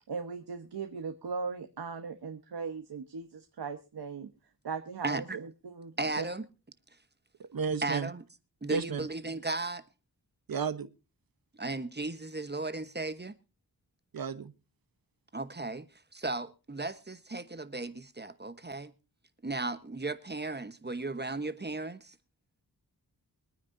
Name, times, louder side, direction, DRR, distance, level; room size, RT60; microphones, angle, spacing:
voice 1, 0.1-4.3 4.6-6.2, right 5 dB, 85° right, 1.2 m, -38 dB
voice 2, 5.0-5.4 6.0-6.4 7.8-8.2 8.6-9.8 11.6-13.3 15.3-15.9 16.1-18.9 19.4-22.1, right 2 dB, 25° right, 1.2 m, -35 dB
voice 3, 7.5-8.1 8.7-9.1 10.5-10.9 14.1-14.5, right 5 dB, 65° right, 1.1 m, -32 dB
24.5 x 9.5 x 2.7 m
wide cardioid pair, 70°, 38 cm